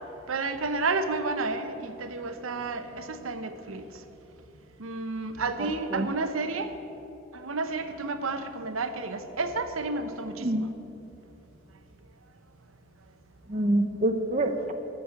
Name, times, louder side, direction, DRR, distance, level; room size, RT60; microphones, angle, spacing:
voice 1, 0.3-3.8 4.8-6.7 7.3-10.5, right 3 dB, 85° right, 9 dB, 0.9 m, -31 dB
voice 2, 5.6-6.1 10.0-10.6 13.5-14.7, right 1 dB, 35° right, 6 dB, 0.7 m, -27 dB
14.5 x 6.3 x 8.4 m, 2.9 s
head